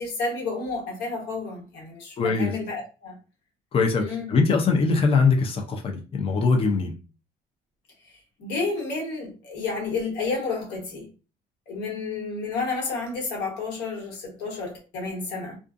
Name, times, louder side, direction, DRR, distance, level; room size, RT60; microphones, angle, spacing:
voice 1, 0.0-3.2 4.0-4.3 8.0-8.1 8.4-11.1 11.7-15.6, left 3 dB, 85° left, 1.2 m, -31 dB
voice 2, 2.2-2.5 3.7-6.9, left 4 dB, 35° left, 0.5 m, -22 dB
2.4 x 2.4 x 2.5 m
cardioid pair, 110°, 17 cm